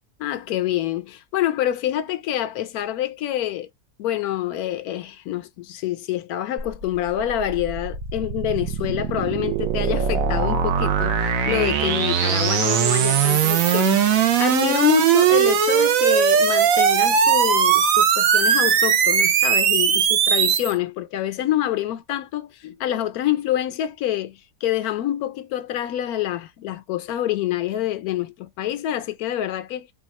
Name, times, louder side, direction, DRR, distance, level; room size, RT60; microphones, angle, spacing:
voice 1, 0.2-3.7 4.0-29.9, left 12 dB, 75° left, 1.0 m, -26 dB
sound 1, 6.6-20.7, right 8 dB, 65° right, 1.0 m, -20 dB
3.5 x 2.4 x 4.1 m
omnidirectional pair, 1.7 m